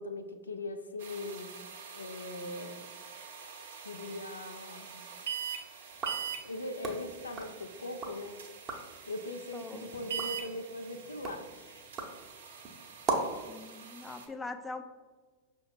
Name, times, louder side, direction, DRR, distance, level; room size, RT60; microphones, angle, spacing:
voice 1, 0.0-1.5 1.9-2.9 3.8-5.0 6.4-8.4 9.1-11.8, left 2 dB, 85° left, 6 dB, 0.4 m, -40 dB
sound 1, 1.0-14.3, right 7 dB, 70° right, 0.7 m, -44 dB
sound 2, 5.9-8.2 8.5-9.0 9.5-13.5, right 3 dB, 30° right, 0.8 m, -39 dB
voice 2, 9.5-9.9 13.5-14.8, left 3 dB, 15° left, 7 dB, 0.4 m, -42 dB
5.5 x 2.2 x 4.2 m, 1.4 s
figure-of-eight pair, 95°, 0 cm